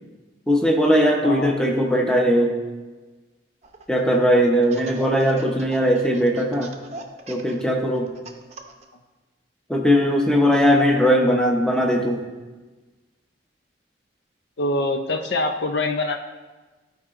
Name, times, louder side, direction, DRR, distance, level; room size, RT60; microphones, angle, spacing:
voice 1, 0.5-2.6 3.9-6.7 7.3-8.1 9.7-12.2, equal, 5° left, 1 dB, 0.7 m, -19 dB
voice 2, 1.2-1.6 10.9-11.0 14.6-16.2, left 2 dB, 65° left, 5 dB, 0.6 m, -24 dB
Laughter, 3.6-4.2 4.6-8.8, right 2 dB, 35° right, 0.7 m, -39 dB
14.0 x 4.8 x 2.5 m, 1.3 s
head